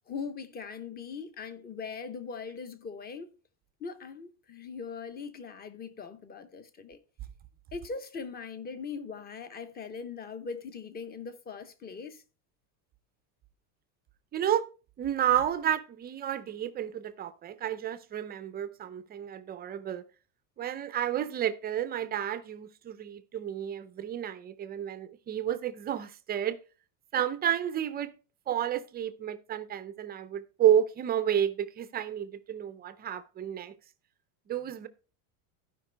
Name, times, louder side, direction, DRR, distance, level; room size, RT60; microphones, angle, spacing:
voice 1, 0.1-3.3 3.8-7.0 7.7-12.2, left 5 dB, 20° left, 0.8 m, -40 dB
voice 2, 14.3-14.6 15.0-20.0 20.6-26.6 27.1-28.1 28.5-33.7 34.5-34.9, right 10 dB, 20° right, 0.4 m, -31 dB
15.0 x 5.2 x 3.3 m
supercardioid pair, 145°, 46 cm